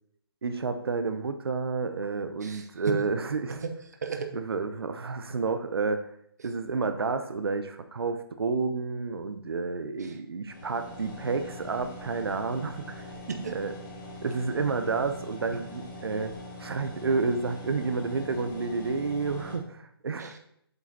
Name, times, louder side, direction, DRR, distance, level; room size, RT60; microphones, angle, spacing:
voice 1, 0.4-3.6 4.3-6.1 6.4-13.0 13.5-13.7 14.2-16.3 16.6-20.3, right 4 dB, 75° right, 9 dB, 0.7 m, -30 dB
voice 2, 2.4-3.0 3.5-3.7 4.0-4.3 10.0-10.2 13.1-13.6 15.5-15.6 20.2-20.4, right 6 dB, 40° right, 6 dB, 0.8 m, -35 dB
sound 1, 10.5-19.6, left 1 dB, 55° left, 2.7 m, -43 dB
7.9 x 5.0 x 4.0 m, 0.71 s
hypercardioid pair, 180°, 13 cm